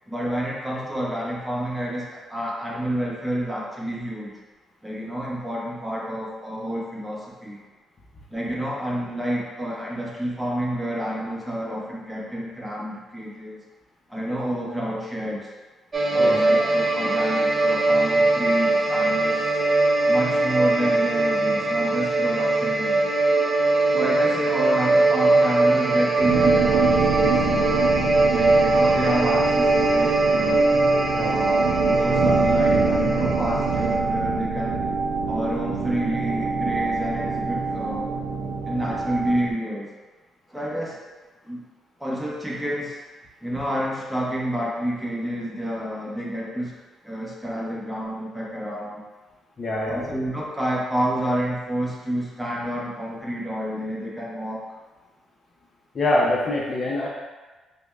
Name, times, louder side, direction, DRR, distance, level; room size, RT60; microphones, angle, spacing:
voice 1, 0.1-4.3 4.8-7.6 8.3-13.6 14.1-15.5 16.1-19.6 20.1-23.1 23.9-27.7 28.3-30.7 31.2-34.8 35.3-38.1 38.6-39.9 40.5-41.0 41.4-41.6 42.0-43.0 43.4-46.8 47.0-49.0 49.9-54.7, equal, 5° right, -4 dB, 0.9 m, -29 dB
sound 1, 15.9-34.0, right 2 dB, 30° right, 0.5 m, -21 dB
sound 2, 26.2-39.5, right 5 dB, 85° right, 0.4 m, -26 dB
voice 2, 49.6-50.2 55.9-57.1, left 1 dB, 40° left, -4 dB, 0.6 m, -24 dB
5.0 x 2.2 x 2.4 m, 1.2 s
cardioid pair, 90°, 0 cm